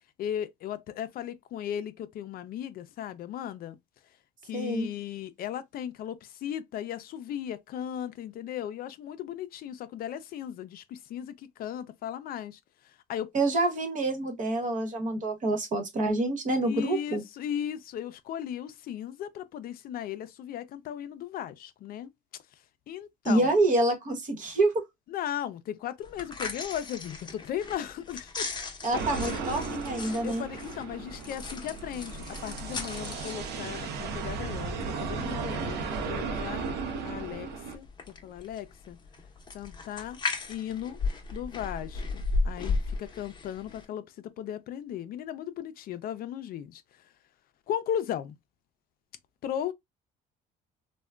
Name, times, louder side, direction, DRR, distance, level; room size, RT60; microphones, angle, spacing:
voice 1, 0.2-3.8 4.4-13.3 16.7-22.1 22.9-23.5 25.1-28.6 30.2-36.7 37.0-37.5 37.7-39.0 39.5-40.2 40.5-41.0 41.3-47.0 47.7-48.3 49.4-49.7, left 10 dB, 60° left, 0.4 m, -36 dB
voice 2, 4.5-4.9 13.3-17.2 23.2-24.7 28.8-30.4, right 2 dB, 50° right, 1.1 m, -27 dB
sound 1, 26.0-43.9, left 3 dB, 25° left, 0.8 m, -37 dB
sound 2, 28.9-37.8, right 4 dB, 80° right, 0.7 m, -35 dB
3.4 x 2.2 x 2.3 m
cardioid pair, 110°, 17 cm